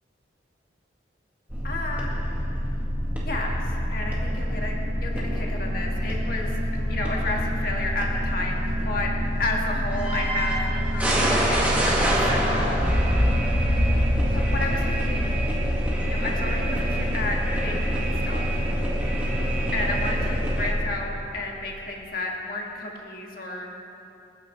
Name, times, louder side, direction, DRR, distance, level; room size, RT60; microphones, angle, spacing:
sound 1, 1.5-20.7, equal, 10° right, 1.9 m, -25 dB
voice 1, 1.6-2.1 3.2-4.7 5.0-6.5 6.9-9.1 9.4-12.9 14.3-15.3 16.0-18.4 19.7-23.7, left 2 dB, 50° left, -1 dB, 1.8 m, -32 dB
28.0 x 9.6 x 3.3 m, 2.8 s
head